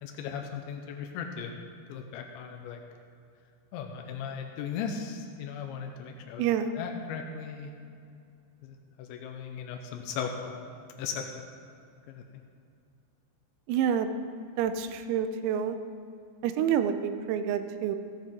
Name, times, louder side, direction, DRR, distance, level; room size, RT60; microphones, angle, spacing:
voice 1, 0.0-1.5 1.9-2.8 3.7-6.4 6.7-7.7 8.6-10.7 11.0-11.3 12.1-12.2, left 7 dB, 90° left, 4 dB, 2.6 m, -37 dB
voice 2, 6.4-6.7 13.7-14.1 14.6-15.8 16.4-18.0, right 8 dB, 85° right, 9 dB, 3.4 m, -28 dB
16.0 x 9.2 x 3.7 m, 2.5 s
omnidirectional pair, 6.0 m